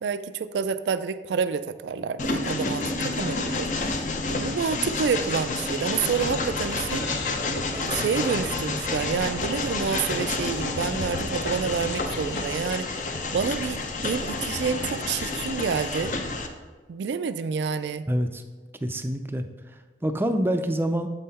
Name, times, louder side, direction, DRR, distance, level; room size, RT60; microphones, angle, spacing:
voice 1, 0.0-3.7 4.2-7.1 7.7-12.9 13.3-16.1 16.9-18.1, right 6 dB, 85° right, 13 dB, 0.3 m, -28 dB
Train, 2.2-16.5, left 3 dB, 45° left, 0.6 m, -29 dB
sound 1, 5.9-12.6, left 2 dB, 80° left, 1.0 m, -40 dB
voice 2, 18.1-18.4 18.8-21.1, equal, 10° right, 7 dB, 0.4 m, -27 dB
7.5 x 5.6 x 4.1 m, 1.4 s
head